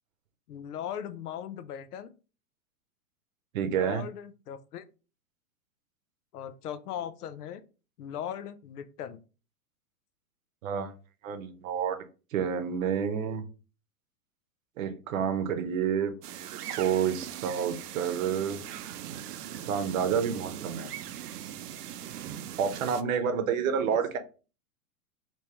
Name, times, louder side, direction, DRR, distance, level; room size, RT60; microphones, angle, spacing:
voice 1, 0.5-2.1 3.6-4.9 6.3-7.6 8.0-9.2, left 9 dB, 85° left, 0.6 m, -38 dB
voice 2, 3.5-4.0 10.6-10.9 11.2-12.0 12.3-13.4 14.8-18.6 19.7-20.9 22.6-24.2, right 7 dB, 60° right, 0.8 m, -29 dB
sound 1, 16.2-23.0, right 11 dB, 90° right, 0.5 m, -40 dB
3.4 x 2.9 x 2.8 m
hypercardioid pair, 135°, 45 cm